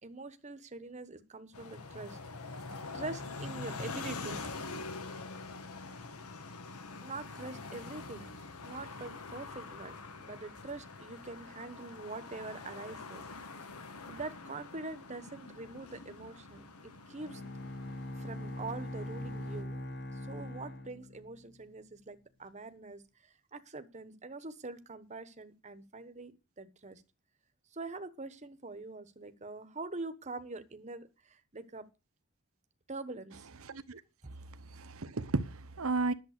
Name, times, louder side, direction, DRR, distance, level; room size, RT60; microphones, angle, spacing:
voice 1, 0.0-2.2 2.9-4.6 7.0-13.8 14.1-17.5 18.2-27.0 27.7-31.9 32.9-33.5, right 3 dB, 30° right, 1.1 m, -44 dB
sound 1, 1.5-19.6, left 3 dB, 85° left, 1.4 m, -45 dB
Bowed string instrument, 17.2-21.6, left 1 dB, 55° left, 1.9 m, -42 dB
voice 2, 33.7-34.0 34.7-36.1, right 3 dB, 70° right, 0.9 m, -33 dB
11.0 x 7.4 x 6.6 m
head